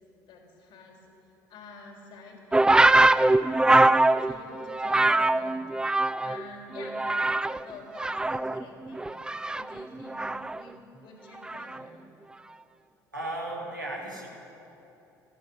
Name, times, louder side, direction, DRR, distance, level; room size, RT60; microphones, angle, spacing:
voice 1, 0.3-1.0 1.3-3.1 4.2-5.6 6.2-7.2 7.6-9.1 9.5-12.0, left 3 dB, 55° left, 1 dB, 3.2 m, -48 dB
sound 1, 2.5-6.4 6.7-7.6 7.9-10.6 11.5-11.8, right 2 dB, 10° right, 0.4 m, -23 dB
voice 2, 13.1-14.3, right 1 dB, 90° right, -2 dB, 2.0 m, -35 dB
17.0 x 14.0 x 6.1 m, 3.0 s
figure-of-eight pair, 55°, 10 cm